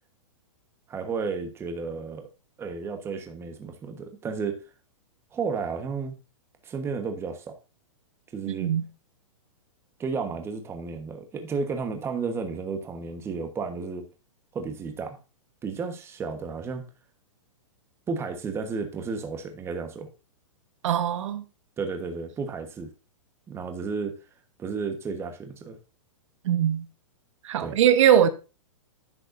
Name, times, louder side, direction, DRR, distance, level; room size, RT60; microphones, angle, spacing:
voice 1, 0.9-2.3 2.6-4.6 5.3-6.2 6.6-7.5 8.3-8.7 10.0-14.1 14.5-15.2 15.6-16.8 18.1-20.1 21.8-22.9 23.5-24.2 24.6-25.8 27.6-27.8, right 5 dB, 15° right, 1.2 m, -32 dB
voice 2, 8.5-8.8 20.8-21.4 26.4-26.8 27.4-28.3, right 9 dB, 65° right, 1.1 m, -21 dB
10.5 x 7.7 x 2.6 m
hypercardioid pair, 145°, 17 cm